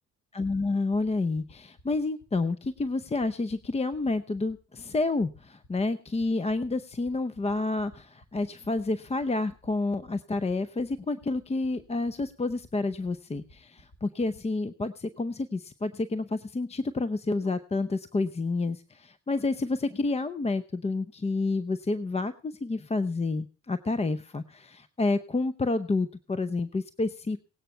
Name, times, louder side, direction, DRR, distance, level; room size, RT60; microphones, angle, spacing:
voice 1, 0.3-27.4, left 3 dB, 20° left, 13 dB, 0.7 m, -29 dB
sound 1, 0.9-14.4, left 1 dB, 35° left, 6.6 m, -55 dB
18.0 x 9.1 x 5.6 m, 0.38 s
cardioid pair, 90°, 30 cm